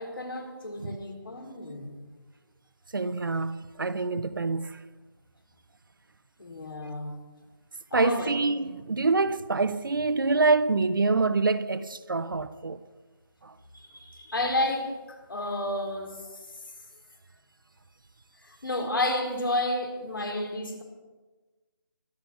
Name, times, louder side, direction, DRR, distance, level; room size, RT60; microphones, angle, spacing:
voice 1, 0.0-2.0 6.4-7.1 7.9-8.3 13.7-16.6 18.4-20.8, left 1 dB, 70° left, 4.4 m, -31 dB
voice 2, 2.9-4.8 7.9-12.8 13.4-13.5, right 3 dB, 65° right, 0.9 m, -26 dB
23.5 x 12.0 x 4.5 m
figure-of-eight pair, 165°, 12 cm